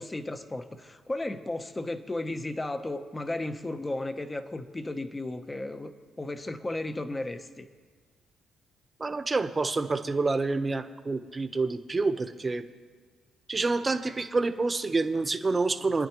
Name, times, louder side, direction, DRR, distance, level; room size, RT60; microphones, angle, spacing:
voice 1, 0.0-7.7, left 2 dB, 20° left, 9 dB, 0.9 m, -34 dB
voice 2, 9.0-12.6 13.5-16.1, right 3 dB, 25° right, 8 dB, 1.0 m, -28 dB
27.0 x 9.8 x 3.1 m, 1.5 s
cardioid pair, 90°, 0 cm